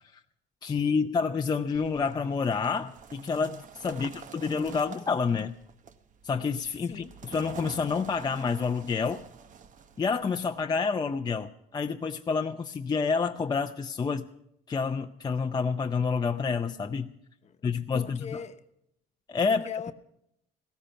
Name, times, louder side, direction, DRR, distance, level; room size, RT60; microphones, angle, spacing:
voice 1, 0.6-5.5 6.2-9.2 10.0-14.3 14.7-17.1 17.6-18.2 19.3-19.6, left 5 dB, 25° left, 0.6 m, -28 dB
sound 1, 1.7-10.6, right 7 dB, 50° right, 1.0 m, -48 dB
voice 2, 3.9-4.2 6.8-7.2 17.4-17.7 17.9-18.6 19.4-19.9, left 7 dB, 40° left, 1.0 m, -41 dB
16.5 x 13.5 x 5.7 m
cardioid pair, 110°, 17 cm